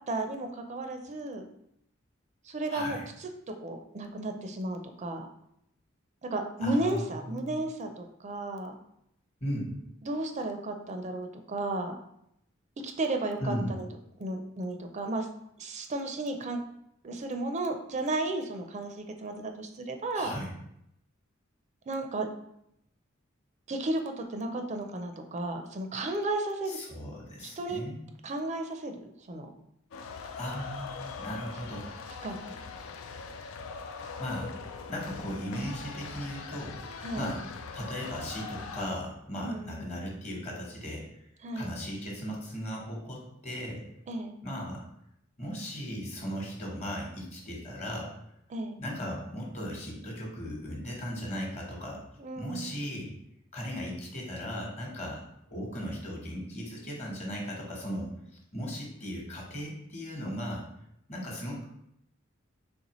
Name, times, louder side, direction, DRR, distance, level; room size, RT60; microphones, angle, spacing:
voice 1, 0.1-1.5 2.4-5.3 6.2-8.7 10.0-11.9 12.8-13.8 14.2-15.3 15.6-16.6 17.0-20.3 21.9-22.3 23.7-26.8 27.4-27.8 28.2-29.5 32.2-32.6 37.0-37.3 39.4-39.9 41.4-41.7 44.1-44.4 48.5-48.8 52.2-52.8, right 2 dB, 35° right, 5 dB, 0.4 m, -34 dB
voice 2, 2.7-3.0 6.6-7.6 9.4-9.7 13.4-13.7 20.1-20.5 26.7-28.0 30.4-31.9 33.9-34.6 34.9-37.4 37.7-41.1 41.5-43.8 44.4-44.8 45.4-48.2 48.8-52.0 52.4-53.1 53.5-58.1 58.5-60.7 61.1-61.7, equal, 35° left, -1 dB, 1.1 m, -37 dB
sound 1, 29.9-38.9, left 5 dB, 90° left, 0.4 m, -41 dB
4.0 x 3.3 x 3.0 m, 0.75 s
head